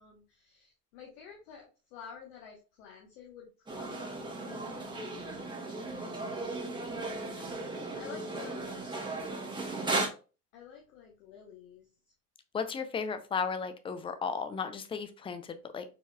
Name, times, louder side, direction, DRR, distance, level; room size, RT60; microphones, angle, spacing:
voice 1, 0.0-5.5 7.3-7.6 8.0-8.8 10.5-11.9, left 7 dB, 60° left, 1.1 m, -51 dB
sound 1, 3.7-10.1, right 2 dB, 10° right, 1.6 m, -36 dB
voice 2, 12.5-15.8, left 5 dB, 10° left, 0.4 m, -35 dB
4.5 x 4.3 x 2.2 m
figure-of-eight pair, 65°, 48 cm